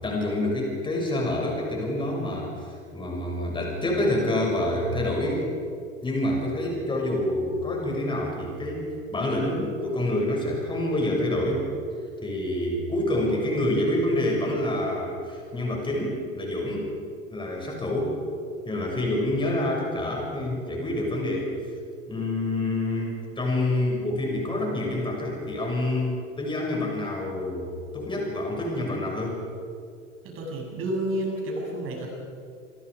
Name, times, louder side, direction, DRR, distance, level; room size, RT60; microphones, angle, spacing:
voice 1, 0.0-5.5 6.0-8.8 9.1-11.7 12.2-16.9 17.3-18.1 18.7-21.5 22.1-29.4, left 1 dB, 10° left, -1 dB, 7.1 m, -27 dB
voice 2, 30.2-32.1, right 1 dB, 30° right, -1 dB, 7.9 m, -30 dB
28.5 x 23.0 x 5.1 m, 2.4 s
figure-of-eight pair, 95°, 39 cm